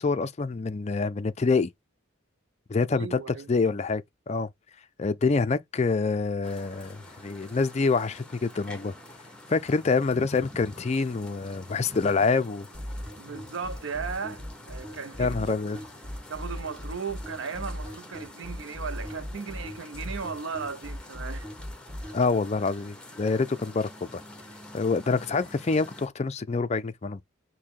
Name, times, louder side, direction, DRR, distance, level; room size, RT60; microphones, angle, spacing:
voice 1, 0.0-1.7 2.7-3.2 3.5-4.5 5.0-8.9 9.5-12.7 15.2-15.8 22.1-24.2 24.7-27.2, left 4 dB, 30° left, 0.4 m, -26 dB
voice 2, 2.9-3.5 13.2-15.8 16.3-21.4, right 5 dB, 60° right, 0.6 m, -36 dB
sound 1, 6.4-26.1, left 1 dB, 5° left, 0.8 m, -47 dB
sound 2, 12.7-22.2, equal, 30° right, 2.0 m, -37 dB
6.4 x 2.2 x 3.6 m
head